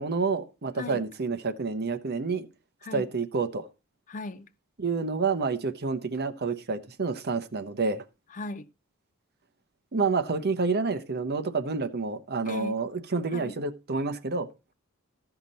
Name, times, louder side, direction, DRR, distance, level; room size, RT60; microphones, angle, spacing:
voice 1, 0.0-2.5 2.9-3.7 4.8-8.0 9.9-14.5, right 4 dB, 50° right, 0.9 m, -29 dB
voice 2, 4.1-4.5 8.3-8.7 12.5-12.8 13.3-13.5, left 2 dB, 35° left, 0.5 m, -37 dB
14.5 x 5.9 x 4.0 m
head